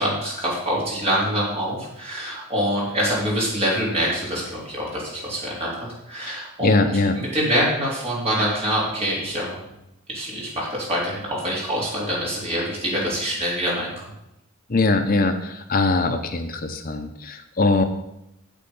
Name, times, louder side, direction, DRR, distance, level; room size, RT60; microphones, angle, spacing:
voice 1, 0.0-6.9 7.2-9.7 10.1-14.1, equal, 25° right, -5 dB, 3.8 m, -25 dB
voice 2, 6.3-7.2 14.7-17.8, left 3 dB, 40° left, 6 dB, 0.8 m, -22 dB
8.6 x 7.6 x 5.4 m, 0.85 s
head